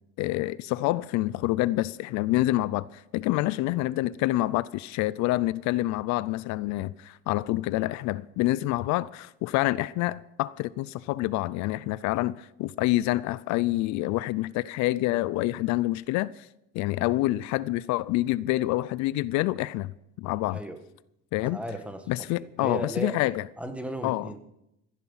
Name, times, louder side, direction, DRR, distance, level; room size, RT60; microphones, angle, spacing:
voice 1, 0.2-16.5 16.7-19.9 20.2-20.6 21.3-21.6 22.1-23.4 24.0-24.3, left 17 dB, 70° left, 0.5 m, -27 dB
voice 2, 20.5-20.8 21.4-23.2 23.6-24.4, right 1 dB, 5° right, 1.6 m, -35 dB
15.5 x 11.0 x 5.7 m
cardioid pair, 125°, 30 cm